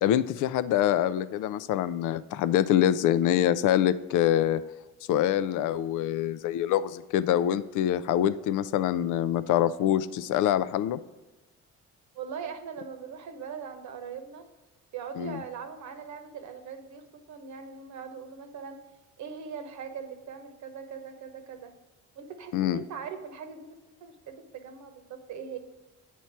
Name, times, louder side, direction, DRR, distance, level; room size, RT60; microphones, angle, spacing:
voice 1, 0.0-4.6 5.1-11.0 15.2-15.4 22.5-22.8, left 11 dB, 80° left, 15 dB, 0.5 m, -25 dB
voice 2, 12.1-14.5 14.9-18.8 19.2-21.7 22.2-25.6, right 6 dB, 70° right, 6 dB, 1.0 m, -41 dB
8.3 x 4.4 x 4.6 m, 1.1 s
cardioid pair, 90°, 30 cm